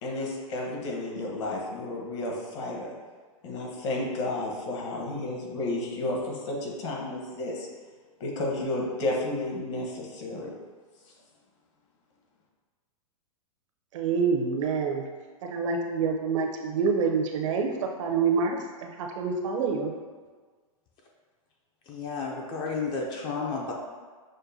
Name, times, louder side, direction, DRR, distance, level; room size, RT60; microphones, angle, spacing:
voice 1, 0.0-2.9 3.4-7.7 8.2-10.5, left 2 dB, 55° left, -2 dB, 1.1 m, -32 dB
voice 2, 13.9-15.0 15.4-17.7 18.0-19.9, right 5 dB, 60° right, 2 dB, 0.6 m, -27 dB
voice 3, 21.9-23.7, left 4 dB, 25° left, -1 dB, 0.4 m, -32 dB
6.3 x 2.2 x 2.6 m, 1.5 s
hypercardioid pair, 140°, 18 cm